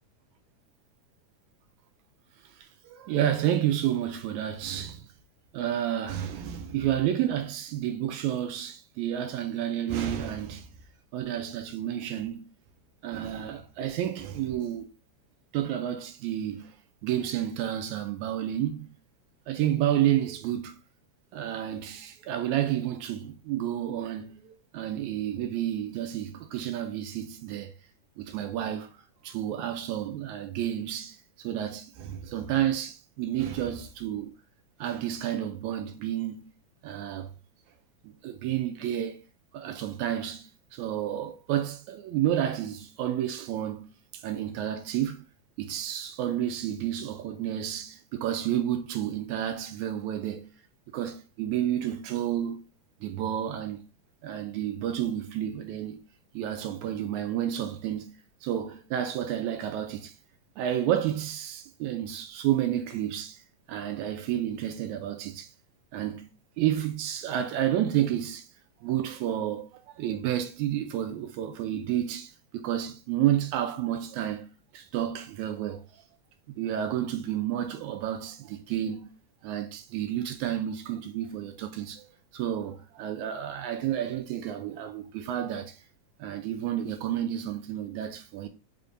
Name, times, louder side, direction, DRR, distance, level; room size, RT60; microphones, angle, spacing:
voice 1, 2.6-5.1 5.5-10.7 11.1-12.4 13.0-14.9 15.5-16.8 17.0-18.9 19.5-20.8 21.3-27.7 28.2-28.9 29.2-34.3 34.8-36.5 36.8-37.3 38.0-39.2 39.5-43.9 44.1-45.2 45.6-50.5 50.9-52.6 53.0-53.9 54.2-56.0 56.3-58.1 58.4-60.1 60.6-63.4 63.7-65.5 65.9-66.3 66.6-68.5 68.8-76.0 76.6-79.2 79.4-82.1 82.3-85.8 86.2-88.5, right 11 dB, 80° right, 1.8 m, -30 dB
4.7 x 3.5 x 2.5 m
omnidirectional pair, 3.7 m